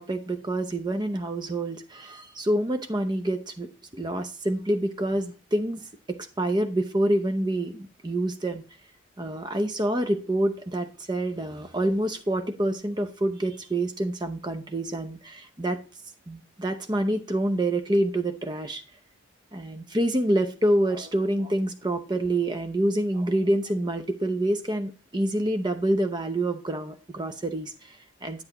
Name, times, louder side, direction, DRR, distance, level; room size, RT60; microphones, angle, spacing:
voice 1, 0.0-8.6 9.2-15.8 16.3-18.8 19.5-28.4, right 1 dB, 20° right, 8 dB, 0.7 m, -27 dB
8.7 x 7.9 x 2.9 m, 0.36 s
head